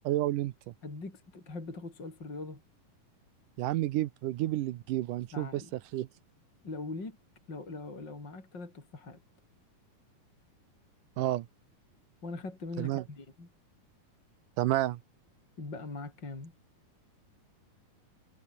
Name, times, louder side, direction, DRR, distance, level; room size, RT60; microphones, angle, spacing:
voice 1, 0.0-0.7 3.6-5.6 5.9-6.1 11.2-11.5 12.8-13.0 14.6-15.0, right 15 dB, 75° right, 2.4 m, -30 dB
voice 2, 0.8-2.6 5.3-5.7 6.6-7.2 7.5-9.2 12.2-13.5 15.6-16.5, left 3 dB, 30° left, 5.7 m, -41 dB
omnidirectional pair, 3.9 m